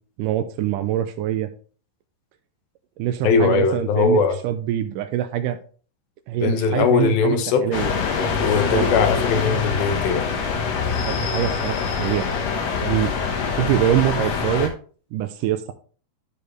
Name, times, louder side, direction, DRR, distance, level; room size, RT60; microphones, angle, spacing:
voice 1, 0.2-1.5 3.0-5.6 6.3-7.9 8.7-8.9 11.1-12.3 12.8-13.1 13.6-14.7 15.1-15.7, right 12 dB, 80° right, 2.0 m, -24 dB
voice 2, 3.2-4.4 6.4-7.7 8.4-10.2, left 5 dB, 85° left, 2.8 m, -20 dB
sound 1, 7.7-14.7, left 5 dB, 60° left, 1.9 m, -24 dB
12.0 x 5.1 x 3.2 m
omnidirectional pair, 4.1 m